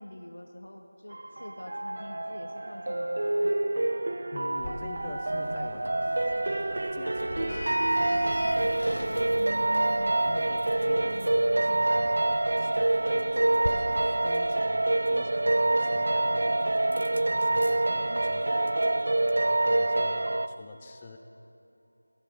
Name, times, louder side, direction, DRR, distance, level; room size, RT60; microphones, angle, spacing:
voice 1, 0.0-3.6 9.4-10.2 10.8-12.1, left 1 dB, 75° left, 3 dB, 1.0 m, -44 dB
sound 1, 1.1-20.5, right 2 dB, 50° right, 0.3 m, -26 dB
voice 2, 4.3-9.6 10.2-12.2 12.6-16.8 17.2-18.7 19.3-21.2, left 3 dB, 15° left, 5 dB, 0.5 m, -46 dB
Sliding door, 4.6-13.7, left 1 dB, 55° left, 0.8 m, -41 dB
sound 2, 5.2-19.3, right 1 dB, 80° right, 0.7 m, -45 dB
15.0 x 9.3 x 5.0 m, 2.9 s
figure-of-eight pair, 170°, 0 cm